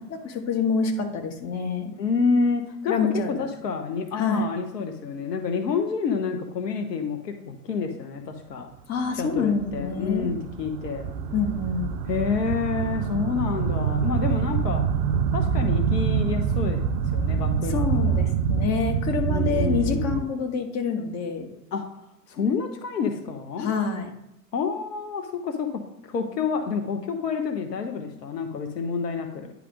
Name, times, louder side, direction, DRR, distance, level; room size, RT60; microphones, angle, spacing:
voice 1, 0.0-1.9 2.9-3.3 4.2-4.5 8.9-10.3 11.3-11.9 17.7-21.5 23.6-24.1, left 5 dB, 30° left, 5 dB, 1.4 m, -27 dB
voice 2, 2.0-8.7 9.2-11.1 12.1-14.8 15.3-16.8 17.1-18.3 19.3-20.3 21.7-21.8 22.3-23.7 24.5-25.8 26.1-29.5, left 5 dB, 75° left, 5 dB, 1.1 m, -28 dB
sound 1, 9.4-20.2, right 7 dB, 30° right, 0.4 m, -26 dB
10.0 x 3.4 x 4.9 m, 0.88 s
figure-of-eight pair, 90°, 50 cm